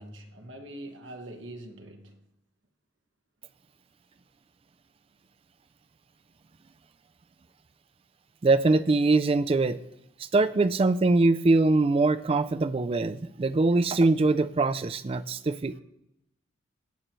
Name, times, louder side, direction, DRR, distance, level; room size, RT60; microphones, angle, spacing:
voice 1, 0.0-2.2, right 1 dB, 65° right, 1.3 m, -43 dB
voice 2, 8.4-9.8 10.2-15.8, right 3 dB, 25° right, 0.3 m, -23 dB
16.5 x 7.5 x 3.1 m
head